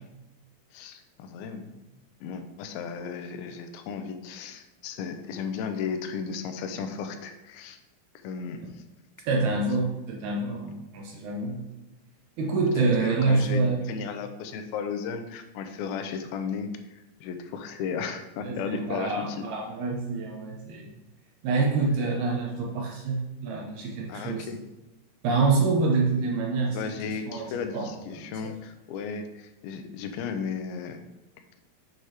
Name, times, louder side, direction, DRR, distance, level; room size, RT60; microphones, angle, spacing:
voice 1, 0.7-1.9 2.2-7.8 8.2-8.8 12.8-19.4 24.1-24.6 26.7-31.0, left 6 dB, 85° left, 7 dB, 2.5 m, -35 dB
voice 2, 9.3-11.6 12.4-13.8 18.4-20.9 21.4-24.5 25.2-26.9 27.3-28.4, right 3 dB, 80° right, 0 dB, 1.7 m, -27 dB
8.0 x 2.9 x 4.7 m, 1.0 s
omnidirectional pair, 4.3 m